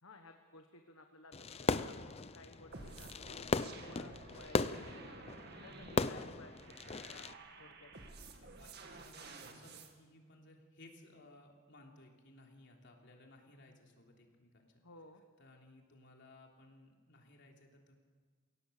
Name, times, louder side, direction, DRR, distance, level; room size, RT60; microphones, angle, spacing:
voice 1, 0.0-5.2 5.6-7.3 7.6-7.9 14.8-15.2, left 3 dB, 75° left, 5 dB, 1.4 m, -57 dB
Fireworks, 1.3-7.3, left 3 dB, 30° left, 0.5 m, -37 dB
sound 1, 2.7-9.9, right 3 dB, 50° right, 2.0 m, -53 dB
voice 2, 8.3-14.8 15.4-18.0, left 2 dB, 55° left, 1 dB, 3.3 m, -60 dB
22.5 x 17.5 x 6.9 m, 1.5 s
head